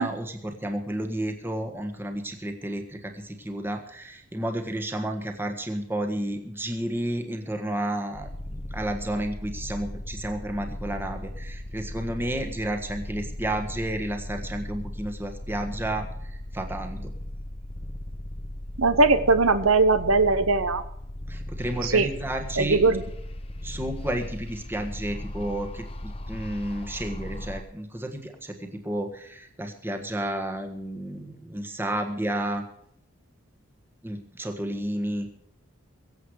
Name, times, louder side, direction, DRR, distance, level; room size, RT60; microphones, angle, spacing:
voice 1, 0.0-16.0 16.5-17.1 21.3-22.8 23.6-32.6 34.0-35.3, right 1 dB, 10° right, 4 dB, 1.4 m, -31 dB
sound 1, 8.2-27.6, left 1 dB, 25° left, 0.8 m, -37 dB
voice 2, 18.8-20.8 21.8-22.1 22.6-23.0, right 3 dB, 85° right, 11 dB, 1.0 m, -20 dB
23.0 x 8.1 x 4.8 m, 0.71 s
head